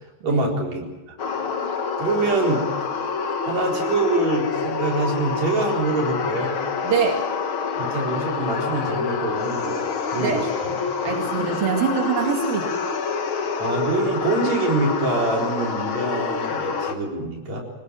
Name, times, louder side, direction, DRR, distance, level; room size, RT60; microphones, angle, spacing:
voice 1, 0.2-0.9 1.4-1.6 2.0-2.6 3.4-6.5 7.8-9.9 10.1-10.5 13.6-17.6, right 2 dB, 50° right, -1 dB, 5.6 m, -25 dB
sound 1, 1.2-16.9, left 5 dB, 45° left, 1.8 m, -27 dB
voice 2, 6.8-7.2 10.2-10.4 11.0-12.7, right 6 dB, 85° right, 1 dB, 4.0 m, -24 dB
24.0 x 20.0 x 7.7 m, 1.1 s
omnidirectional pair, 4.0 m